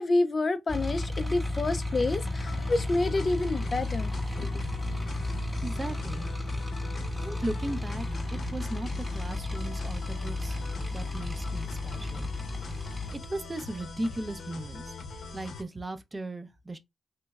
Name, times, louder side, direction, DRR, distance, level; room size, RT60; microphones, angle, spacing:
voice 1, 0.0-4.6, left 2 dB, 35° left, 0.4 m, -28 dB
sound 1, 0.7-13.2, left 2 dB, ahead, 0.9 m, -33 dB
sound 2, 2.4-15.6, left 3 dB, 75° left, 0.8 m, -42 dB
voice 2, 5.6-6.3 7.2-10.6 10.9-12.3 12.7-12.8 13.2-14.9 15.3-16.8, right 1 dB, 25° right, 0.5 m, -37 dB
3.3 x 3.0 x 2.3 m
cardioid pair, 100°, 0 cm